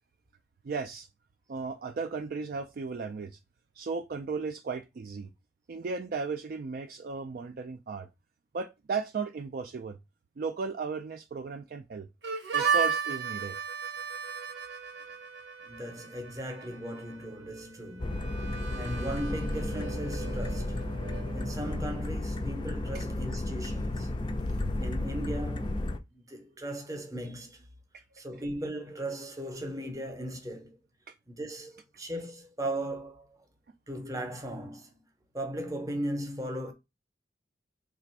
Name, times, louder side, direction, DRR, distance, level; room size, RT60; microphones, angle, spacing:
voice 1, 0.6-1.1 1.5-3.4 3.8-5.3 5.7-8.1 8.5-10.0 10.4-12.1 12.5-13.6 27.9-28.0 31.1-31.2, right 4 dB, 50° right, 0.3 m, -35 dB
Harmonica, 12.2-21.8, right 6 dB, 70° right, 0.8 m, -35 dB
voice 2, 15.6-18.4 18.7-20.8 21.3-24.1 24.5-25.8 26.1-27.7 28.1-30.8 31.3-33.4 33.9-35.1 35.3-36.7, right 1 dB, 20° right, 0.7 m, -37 dB
sound 1, 18.0-26.0, left 2 dB, 25° left, 0.4 m, -33 dB
3.3 x 2.5 x 4.3 m
head